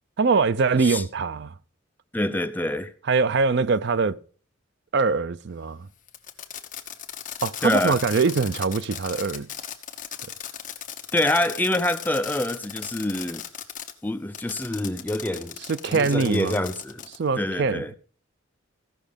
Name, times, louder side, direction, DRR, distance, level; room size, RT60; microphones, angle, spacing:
voice 1, 0.2-1.5 3.1-4.2 4.9-5.9 7.4-9.5 15.7-16.6 17.2-18.0, right 4 dB, 55° right, 0.5 m, -23 dB
voice 2, 2.1-2.9 7.6-8.0 11.1-13.4 14.0-15.6 15.9-17.1 17.4-17.9, left 1 dB, 10° left, 0.5 m, -26 dB
Fireworks, 6.1-13.9 14.3-17.2, left 9 dB, 40° left, 1.1 m, -37 dB
15.5 x 6.1 x 5.1 m
head